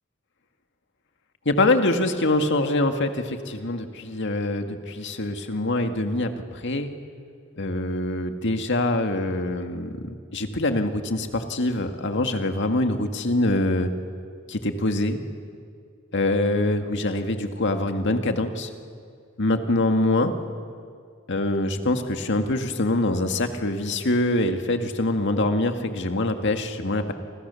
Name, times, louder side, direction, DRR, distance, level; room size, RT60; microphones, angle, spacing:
voice 1, 1.5-6.9 7.6-13.9 14.5-15.2 16.1-18.7 19.4-20.3 21.3-27.1, left 2 dB, 60° left, 6 dB, 2.0 m, -24 dB
28.5 x 27.0 x 7.0 m, 2.3 s
head